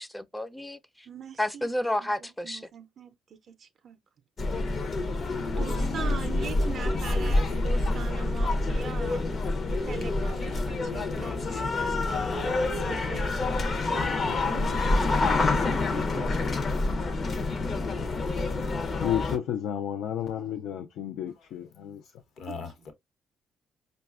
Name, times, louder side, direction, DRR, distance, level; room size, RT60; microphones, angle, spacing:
voice 1, 0.0-1.1 1.4-2.6, left 1 dB, 5° left, 0.3 m, -31 dB
voice 2, 1.1-4.0 5.6-9.2 9.8-13.3 13.9-16.6 22.5-22.6, right 6 dB, 60° right, 0.4 m, -41 dB
sound 1, 4.4-19.4, left 2 dB, 45° left, 0.6 m, -27 dB
voice 3, 5.5-7.7 22.4-22.9, left 3 dB, 70° left, 0.9 m, -38 dB
voice 4, 19.0-22.0, left 10 dB, 90° left, 0.4 m, -31 dB
4.8 x 2.2 x 2.3 m
cardioid pair, 90°, 0 cm